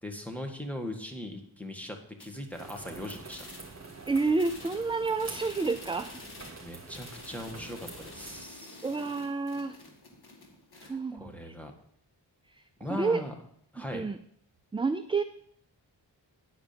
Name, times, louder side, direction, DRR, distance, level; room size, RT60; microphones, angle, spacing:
voice 1, 0.0-3.4 6.6-8.9 10.7-11.7 12.8-13.3 13.7-14.0, left 1 dB, 5° left, 3 dB, 1.8 m, -39 dB
sound 1, 2.2-2.9 3.3-4.0 4.4-10.9, left 2 dB, 55° left, 2.2 m, -49 dB
sound 2, 2.5-8.4, right 3 dB, 35° right, 2.5 m, -46 dB
voice 2, 4.1-6.1 8.8-9.8 10.8-11.5 12.9-13.2 13.9-14.2 14.7-15.2, right 3 dB, 15° right, 10 dB, 0.3 m, -29 dB
10.0 x 5.0 x 6.8 m, 0.66 s
cardioid pair, 70°, 45 cm